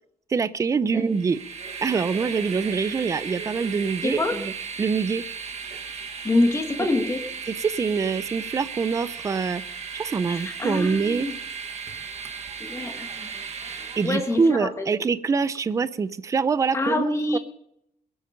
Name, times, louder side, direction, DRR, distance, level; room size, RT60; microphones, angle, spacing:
voice 1, 0.3-1.4 1.8-4.5 4.8-5.2 6.8-6.9 7.5-9.6 9.9-11.3 14.0-17.0 17.3-17.4, right 5 dB, 20° right, 15 dB, 0.4 m, -25 dB
Train, 1.0-14.5, right 6 dB, 45° right, 1.5 m, -36 dB
voice 2, 4.0-4.3 6.2-7.2 10.3-11.3 12.6-13.5 14.0-14.9 16.7-17.4, left 2 dB, 15° left, 4 dB, 1.7 m, -26 dB
21.0 x 8.7 x 5.2 m, 0.78 s
cardioid pair, 175°, 16 cm